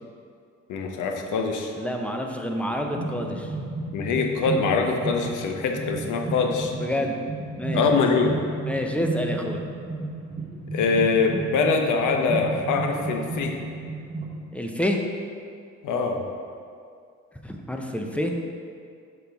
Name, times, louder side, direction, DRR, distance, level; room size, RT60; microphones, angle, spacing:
voice 1, 0.7-1.7 3.9-6.7 7.7-8.3 10.7-13.6 15.8-16.2, left 4 dB, 80° left, 3 dB, 0.9 m, -23 dB
voice 2, 1.8-3.5 6.8-7.2 7.6-8.0 8.7-9.6 14.5-15.0 17.4-18.3, left 1 dB, 5° left, 2 dB, 0.7 m, -28 dB
sound 1, 2.7-14.3, right 2 dB, 20° right, 1.2 m, -33 dB
7.2 x 5.8 x 3.5 m, 2.3 s
cardioid pair, 90°, 30 cm